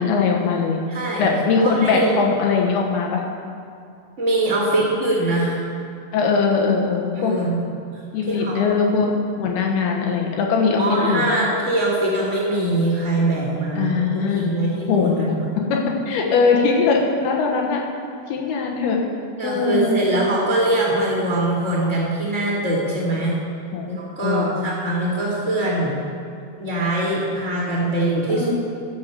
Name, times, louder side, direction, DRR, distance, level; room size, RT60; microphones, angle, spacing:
voice 1, 0.0-0.8 1.2-3.2 6.1-7.3 8.1-9.1 9.4-11.2 13.8-14.4 14.9-15.3 15.7-15.8 16.1-17.8 18.3-19.0 19.4-20.0 23.7-23.9 24.2-24.6 28.3-28.5, left 5 dB, 75° left, 0 dB, 3.0 m, -20 dB
voice 2, 0.9-2.1 4.2-5.6 7.1-7.6 7.9-8.7 10.8-14.0 14.3-15.4 19.4-23.4 23.9-26.0 26.6-28.5, right 2 dB, 20° right, -10 dB, 2.5 m, -22 dB
12.0 x 7.4 x 7.2 m, 2.4 s
omnidirectional pair, 4.7 m